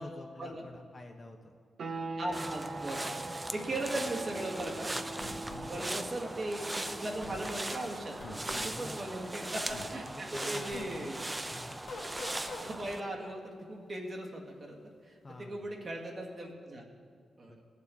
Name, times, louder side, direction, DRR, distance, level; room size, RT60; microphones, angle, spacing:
voice 1, 0.0-1.5 4.9-5.9 8.7-9.2 10.1-11.1 11.5-11.8 15.2-15.8 17.5-17.6, left 2 dB, 35° left, 2 dB, 0.7 m, -48 dB
sound 1, 1.8-12.3, right 3 dB, 70° right, 0.8 m, -45 dB
voice 2, 2.2-3.2 3.5-4.9 5.7-11.2 12.6-14.8 15.0-16.9 17.4-17.5, right 1 dB, 50° right, -1 dB, 1.7 m, -38 dB
sound 2, 2.3-13.0, right 1 dB, 20° right, 0.5 m, -39 dB
sound 3, 5.2-5.7 7.2-7.4 8.2-8.7 9.7-9.9 10.7-10.9 11.9-12.7, left 3 dB, 80° left, 1.5 m, -43 dB
16.5 x 6.7 x 3.5 m, 2.1 s
cardioid pair, 65°, 0 cm